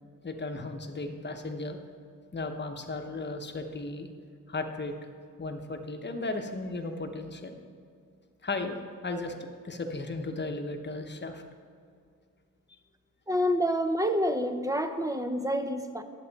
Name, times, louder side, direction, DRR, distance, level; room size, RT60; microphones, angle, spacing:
voice 1, 0.2-1.8 2.3-4.1 4.5-4.9 5.4-7.6 8.4-11.4, left 2 dB, 30° left, 5 dB, 1.0 m, -35 dB
voice 2, 13.3-16.0, equal, 10° right, 8 dB, 0.6 m, -28 dB
11.0 x 8.1 x 4.1 m, 2.3 s
cardioid pair, 95°, 33 cm